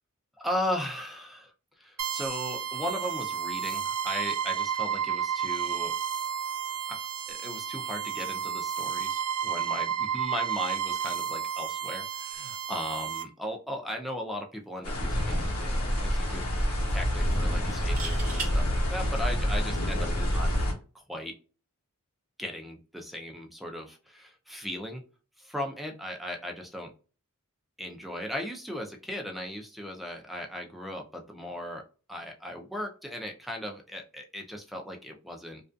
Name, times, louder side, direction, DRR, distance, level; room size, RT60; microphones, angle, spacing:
voice 1, 0.4-5.9 6.9-7.0 7.3-16.5 16.9-20.5 20.9-21.4 22.4-25.0 25.4-26.9 27.8-31.8 32.1-35.6, equal, ahead, 2 dB, 0.4 m, -37 dB
sound 1, 2.0-13.2, right 8 dB, 85° right, 0.5 m, -32 dB
sound 2, 14.8-20.7, equal, 70° left, 0.9 m, -27 dB
sound 3, 14.9-15.1 15.4-15.5 17.7-18.5 20.4-20.6, right 4 dB, 35° right, 0.8 m, -37 dB
2.5 x 2.3 x 2.3 m, 0.35 s
head